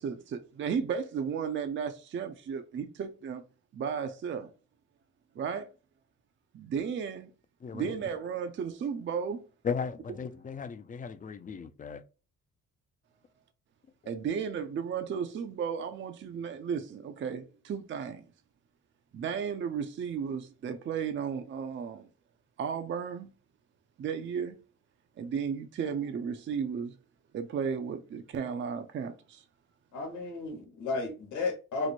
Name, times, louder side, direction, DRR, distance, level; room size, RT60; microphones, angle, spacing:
voice 1, 0.0-3.4 3.7-4.5 5.4-5.7 6.5-7.3 7.7-9.5 14.1-18.2 19.1-22.1 22.6-23.3 24.0-24.6 25.2-27.0 27.3-29.4, right 7 dB, 40° right, 0.5 m, -34 dB
voice 2, 7.6-7.9 9.6-12.0, left 6 dB, 25° left, 0.4 m, -36 dB
voice 3, 29.9-31.9, left 3 dB, 80° left, 1.1 m, -33 dB
3.0 x 2.1 x 4.1 m
cardioid pair, 90°, 30 cm